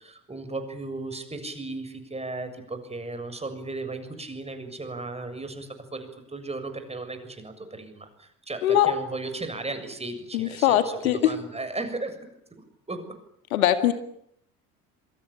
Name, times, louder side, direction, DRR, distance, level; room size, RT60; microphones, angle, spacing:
voice 1, 0.0-12.2 12.9-13.0, right 2 dB, 15° right, 8 dB, 7.0 m, -35 dB
voice 2, 8.6-8.9 10.3-11.3 13.5-13.9, left 12 dB, 65° left, 10 dB, 2.2 m, -21 dB
27.0 x 25.0 x 8.8 m, 0.72 s
figure-of-eight pair, 60°, 45 cm